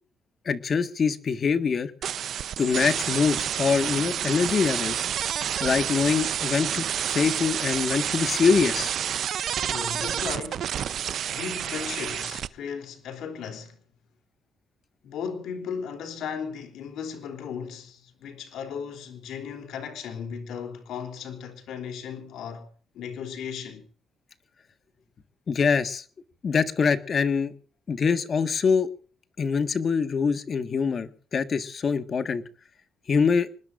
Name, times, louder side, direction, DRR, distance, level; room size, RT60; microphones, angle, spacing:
voice 1, 0.4-1.9 2.6-5.0 5.6-8.9 25.5-26.0 26.4-27.5 27.9-28.9 29.4-32.4 33.1-33.5, left 5 dB, 45° left, 1.6 m, -24 dB
sound 1, 2.0-12.5, right 9 dB, 65° right, 0.7 m, -29 dB
voice 2, 9.6-10.9 11.3-13.8 15.0-22.7 22.9-23.8, left 7 dB, 80° left, 3.3 m, -36 dB
25.0 x 20.0 x 2.6 m
cardioid pair, 90°, 0 cm